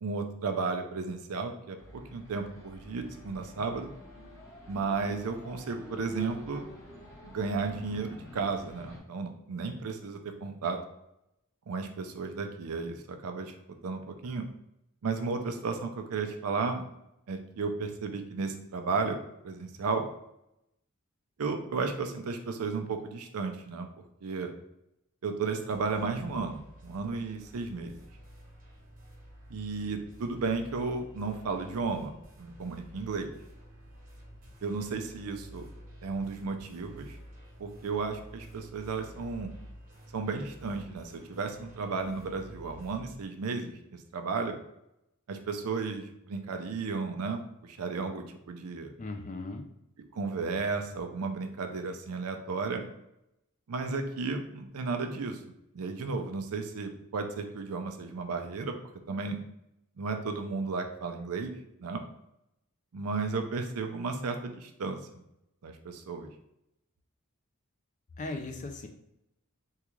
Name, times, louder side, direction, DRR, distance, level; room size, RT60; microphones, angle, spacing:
voice 1, 0.0-3.9 4.7-6.7 7.3-10.8 11.7-13.5 13.8-14.5 15.0-16.8 17.3-19.2 19.4-20.1 21.4-23.9 24.2-24.5 25.2-28.0 29.5-33.3 34.6-35.6 36.0-37.2 37.6-39.5 40.1-44.6 45.3-48.9 50.1-52.8 53.7-55.4 55.7-58.8 59.1-59.4 60.0-61.5 61.8-62.0 62.9-65.0 65.6-66.3, right 4 dB, 85° right, 6 dB, 0.5 m, -34 dB
sound 1, 1.8-9.0, right 1 dB, 10° left, 0.7 m, -48 dB
sound 2, 25.7-43.1, equal, 40° right, 0.8 m, -50 dB
voice 2, 49.0-49.6 68.2-68.9, left 2 dB, 35° left, 5 dB, 0.4 m, -37 dB
3.6 x 2.3 x 3.0 m, 0.84 s
head